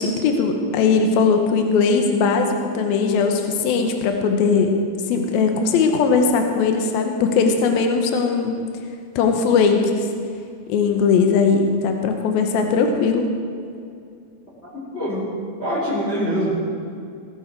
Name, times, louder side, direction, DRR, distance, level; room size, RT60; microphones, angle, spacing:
voice 1, 0.0-4.7 5.1-8.6 9.2-10.1 10.7-13.3, left 5 dB, 80° left, 4 dB, 2.8 m, -19 dB
voice 2, 14.7-15.3 15.6-16.5, equal, 15° left, -7 dB, 3.6 m, -24 dB
18.5 x 12.0 x 4.6 m, 2.4 s
omnidirectional pair, 4.4 m